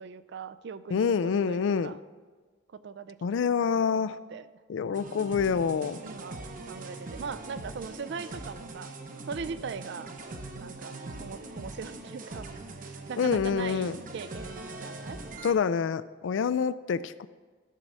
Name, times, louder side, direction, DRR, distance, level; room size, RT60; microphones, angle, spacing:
voice 1, 0.0-2.0 2.7-4.5 6.0-6.4 6.7-8.9 9.3-10.1 10.5-12.5 13.1-15.2, right 5 dB, 60° right, 14 dB, 0.4 m, -40 dB
voice 2, 0.9-1.9 3.2-4.2 4.7-6.0 13.2-14.0 15.4-17.3, left 6 dB, 70° left, 16 dB, 0.3 m, -27 dB
sound 1, 4.9-15.5, right 2 dB, 45° right, 0.8 m, -42 dB
13.0 x 6.1 x 4.2 m, 1.4 s
head